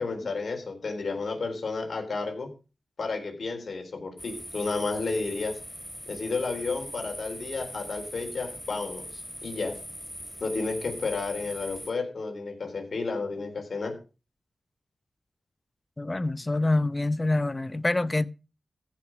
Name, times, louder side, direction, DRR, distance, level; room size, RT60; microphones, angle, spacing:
voice 1, 0.0-2.5 3.0-5.6 6.1-9.8 10.4-14.0, left 4 dB, 70° left, 4.0 m, -32 dB
sound 1, 4.2-11.9, equal, 5° right, 3.7 m, -41 dB
voice 2, 16.0-18.3, left 2 dB, 25° left, 0.7 m, -26 dB
15.0 x 5.9 x 6.2 m
wide cardioid pair, 85°, 0 cm